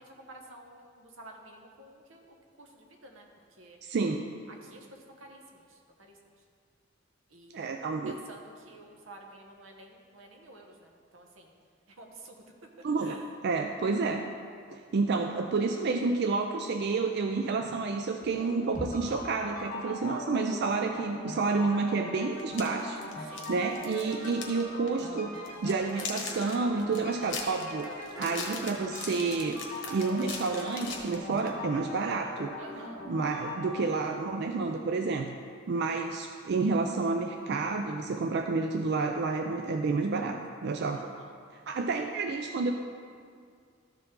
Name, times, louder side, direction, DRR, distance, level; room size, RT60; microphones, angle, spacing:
voice 1, 0.0-3.8 4.5-6.4 7.3-7.8 8.0-11.5 11.9-13.3 19.8-20.3 23.3-23.6 32.6-33.0 40.9-41.4, right 2 dB, 85° right, 2 dB, 1.0 m, -51 dB
voice 2, 3.8-4.2 7.5-8.2 12.8-14.3 14.7-27.9 28.2-29.6 29.9-32.5 33.1-35.4 35.7-41.1 41.7-42.7, right 4 dB, 55° right, 4 dB, 0.4 m, -30 dB
sound 1, 18.2-33.7, left 1 dB, 40° left, 2.0 m, -41 dB
sound 2, 22.4-24.6 24.9-25.1 25.4-31.5, left 5 dB, 65° left, 1.3 m, -40 dB
13.0 x 4.6 x 3.7 m, 2.2 s
head